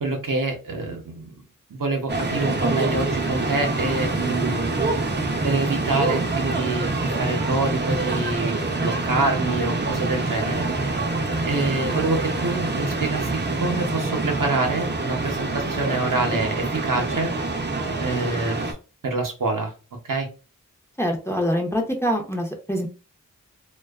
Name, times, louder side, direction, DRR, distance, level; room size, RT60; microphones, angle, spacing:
voice 1, 0.0-1.4 1.7-4.7 5.4-10.7 11.4-17.3 18.0-18.8 19.0-19.7 20.0-20.3, right 3 dB, 70° right, 3 dB, 0.7 m, -26 dB
sound 1, 2.1-18.7, right 2 dB, 30° right, 0.6 m, -26 dB
voice 2, 21.0-22.9, equal, 10° left, 2 dB, 0.6 m, -24 dB
2.5 x 2.2 x 2.3 m, 0.33 s
wide cardioid pair, 40°, 33 cm